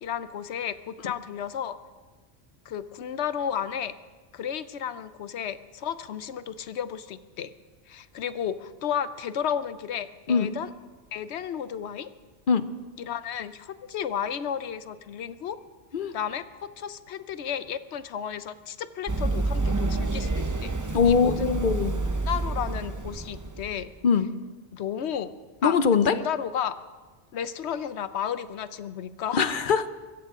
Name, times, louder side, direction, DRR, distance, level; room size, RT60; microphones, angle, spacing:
voice 1, 0.0-1.8 2.7-3.9 4.3-7.5 7.9-10.7 11.1-12.1 13.0-15.6 16.1-21.5 22.2-23.9 24.7-25.3 25.6-26.8 27.3-29.4, left 8 dB, 80° left, 13 dB, 1.0 m, -33 dB
Run, 19.1-23.9, right 2 dB, 20° right, 0.7 m, -28 dB
voice 2, 20.9-21.9 24.0-24.3 25.6-26.2 29.3-29.9, left 6 dB, 55° left, 12 dB, 0.9 m, -22 dB
23.5 x 14.5 x 3.7 m, 1.3 s
omnidirectional pair, 1.1 m